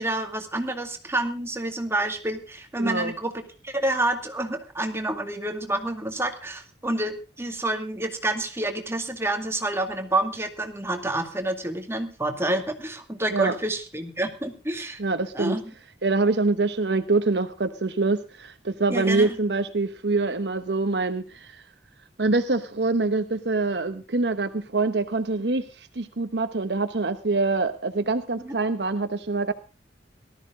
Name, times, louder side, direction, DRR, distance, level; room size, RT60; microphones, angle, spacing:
voice 1, 0.0-15.0 15.3-15.6 18.9-19.4 28.4-28.5, right 1 dB, 15° right, 6 dB, 2.1 m, -28 dB
voice 2, 2.8-3.1 13.3-13.5 15.0-15.6 16.0-21.6 22.2-29.5, right 3 dB, 65° right, 9 dB, 1.0 m, -25 dB
18.5 x 13.5 x 3.7 m, 0.33 s
head